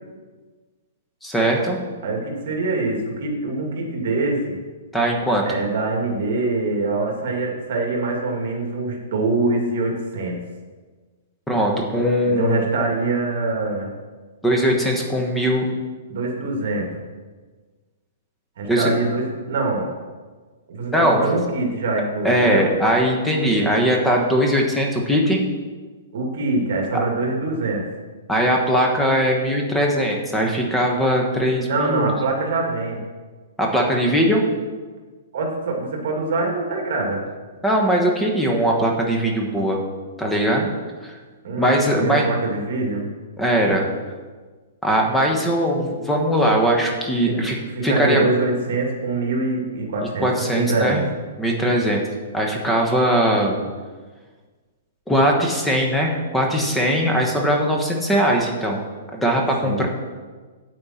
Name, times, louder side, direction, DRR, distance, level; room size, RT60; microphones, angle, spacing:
voice 1, 1.2-1.8 4.9-5.6 11.5-12.7 14.4-15.7 18.7-18.9 20.9-21.2 22.2-25.4 28.3-32.1 33.6-34.4 37.6-39.8 40.2-40.7 41.0-41.1 41.6-42.3 43.4-43.9 44.8-47.6 47.8-48.2 50.2-51.0 51.4-52.0 52.3-53.6 55.1-58.8 59.1-59.9, equal, 5° left, 0 dB, 1.3 m, -20 dB
voice 2, 2.0-4.6 5.4-10.4 12.2-13.9 16.1-16.9 18.6-19.9 20.7-22.7 26.1-27.9 31.7-33.0 35.3-37.2 41.4-43.1 47.2-47.4 47.7-51.0 59.6-59.9, right 3 dB, 60° right, 1 dB, 2.3 m, -24 dB
8.9 x 8.7 x 4.3 m, 1.4 s
hypercardioid pair, 155°, 0 cm